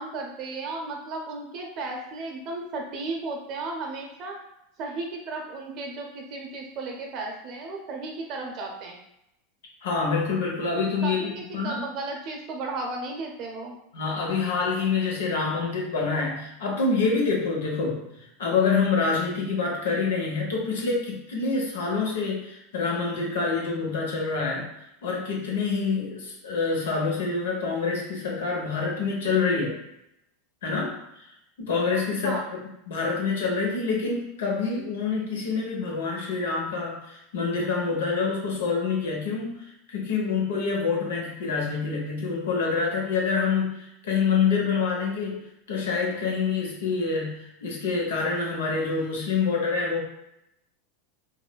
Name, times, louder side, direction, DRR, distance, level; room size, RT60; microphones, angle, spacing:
voice 1, 0.0-4.4 4.8-9.0 11.0-13.8 32.2-32.5, right 3 dB, 50° right, 1 dB, 0.6 m, -34 dB
voice 2, 9.8-11.8 13.9-18.0 18.4-24.7 25.0-29.8 30.6-31.3 31.6-32.4 32.9-39.6 39.9-45.4 45.7-50.0, left 4 dB, 80° left, -1 dB, 0.7 m, -26 dB
3.0 x 2.1 x 2.2 m, 0.83 s
hypercardioid pair, 100°, 0 cm